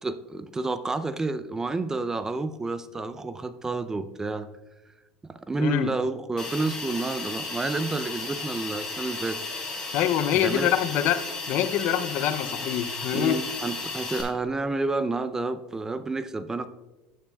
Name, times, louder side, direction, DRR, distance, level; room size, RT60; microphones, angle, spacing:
voice 1, 0.0-4.5 5.3-9.4 10.3-10.7 13.1-16.7, right 3 dB, 15° right, 12 dB, 0.5 m, -30 dB
voice 2, 5.6-5.9 9.9-11.2 11.5-13.4, left 11 dB, 60° left, 13 dB, 0.6 m, -25 dB
Hiss, 6.4-14.2, left 3 dB, 20° left, 3.3 m, -34 dB
12.5 x 9.3 x 2.3 m, 1.1 s
supercardioid pair, 105°, 3 cm